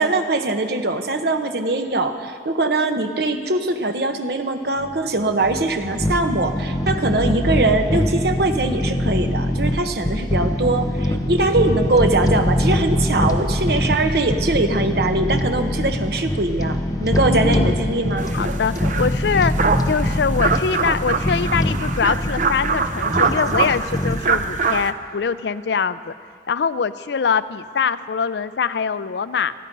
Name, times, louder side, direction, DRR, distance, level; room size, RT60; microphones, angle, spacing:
voice 1, 0.0-18.3, right 2 dB, 60° right, 6 dB, 1.1 m, -22 dB
sound 1, 4.8-24.2, left 1 dB, 20° left, 0.8 m, -23 dB
voice 2, 17.3-17.8 18.3-26.1 26.5-29.5, left 6 dB, 70° left, 15 dB, 0.4 m, -23 dB
sound 2, 18.2-24.9, right 4 dB, 45° right, 0.6 m, -24 dB
27.5 x 9.6 x 5.4 m, 2.1 s
head